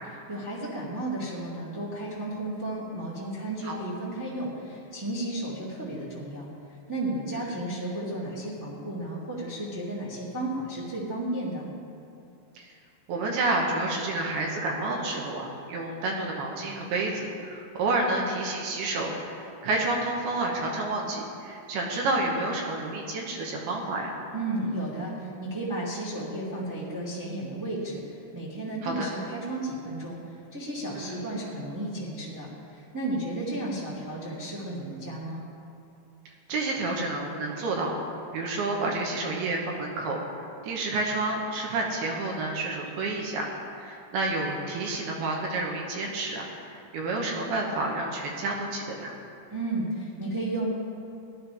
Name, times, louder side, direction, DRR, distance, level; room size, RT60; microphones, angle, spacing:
voice 1, 0.3-6.5 6.9-11.7 24.3-35.4 49.5-50.7, right 1 dB, 15° right, -8 dB, 0.8 m, -33 dB
voice 2, 13.1-24.2 28.8-29.1 30.9-31.2 36.5-38.0 38.3-43.5 43.7-49.1, right 2 dB, 70° right, -1 dB, 2.9 m, -29 dB
17.0 x 12.0 x 3.5 m, 2.7 s
omnidirectional pair, 5.1 m